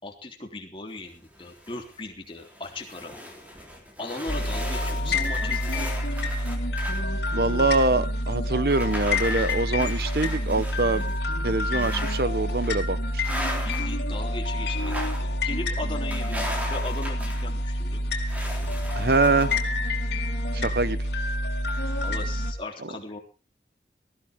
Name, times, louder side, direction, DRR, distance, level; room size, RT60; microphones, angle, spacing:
voice 1, 0.0-3.2 4.0-5.8 13.6-18.1 22.0-23.2, left 2 dB, 30° left, 1 dB, 3.4 m, -38 dB
sound 1, 1.1-2.0 2.4-7.0 7.6-7.7 8.7-11.2 11.7-12.3 12.6-12.8 13.2-14.0 14.7-15.3 16.1-17.5 18.3-19.7, left 1 dB, 10° right, 3.7 m, -37 dB
sound 2, 4.3-22.5, left 1 dB, 75° left, 3.3 m, -28 dB
voice 2, 7.3-11.0 11.4-13.2 19.0-19.5 20.5-21.0, right 3 dB, 60° right, 14 dB, 0.9 m, -24 dB
19.0 x 14.5 x 3.7 m, 0.33 s
head